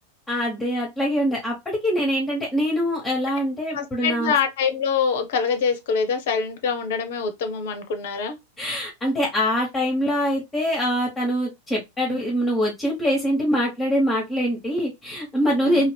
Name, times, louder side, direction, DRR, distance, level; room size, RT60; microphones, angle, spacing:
voice 1, 0.3-4.3 8.6-15.9, equal, 10° left, 0.9 m, -24 dB
voice 2, 3.7-8.4 15.6-15.9, left 6 dB, 55° left, 0.5 m, -25 dB
2.7 x 2.5 x 3.2 m
figure-of-eight pair, 90°, 0 cm